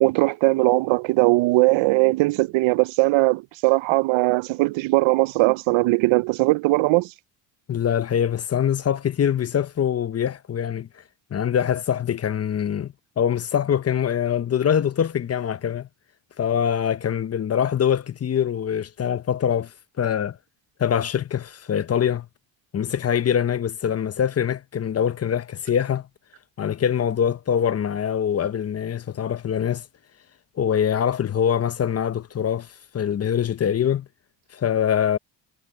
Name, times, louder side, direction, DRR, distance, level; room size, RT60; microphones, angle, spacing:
voice 1, 0.0-7.1, right 22 dB, 75° right, 0.5 m, -19 dB
voice 2, 7.7-10.9 11.3-15.9 16.4-19.7 20.0-20.4 20.8-22.3 22.7-26.1 26.6-29.8 30.6-32.7 32.9-34.1 34.5-35.2, left 9 dB, 30° left, 0.8 m, -23 dB
cardioid pair, 105°, 47 cm